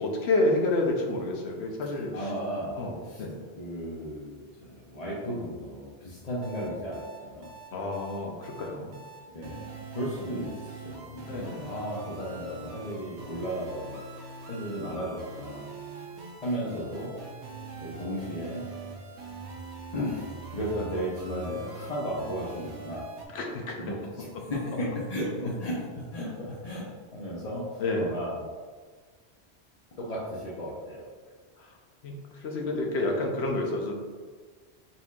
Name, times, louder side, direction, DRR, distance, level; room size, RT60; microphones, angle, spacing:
voice 1, 0.0-2.1 2.7-3.3 7.7-8.9 11.3-11.7 23.3-23.8 27.8-28.1 32.0-32.1 32.4-33.9, left 2 dB, 75° left, 1 dB, 0.9 m, -29 dB
voice 2, 1.8-3.2 3.6-7.5 9.3-14.0 14.5-15.6 16.4-17.1 17.8-18.6 19.9-23.0 23.8-27.7 28.0-28.4 30.0-31.1, equal, 40° left, -7 dB, 0.8 m, -35 dB
sound 1, 6.4-23.2, right 4 dB, 90° right, 1.0 m, -43 dB
4.3 x 4.2 x 2.4 m, 1.5 s
omnidirectional pair, 1.1 m